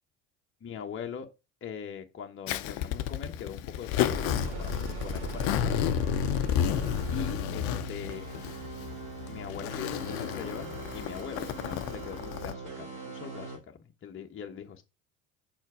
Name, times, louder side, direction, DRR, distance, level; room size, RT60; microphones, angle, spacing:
voice 1, 0.6-1.3 1.6-5.8 7.1-8.2 9.3-13.5 14.0-14.8, left 7 dB, 30° left, 1.1 m, -41 dB
Zipper (clothing), 2.5-12.5, left 10 dB, 60° left, 0.7 m, -32 dB
sound 1, 4.0-13.6, right 2 dB, 70° right, 3.3 m, -39 dB
6.2 x 4.4 x 4.8 m
hypercardioid pair, 70°, 39 cm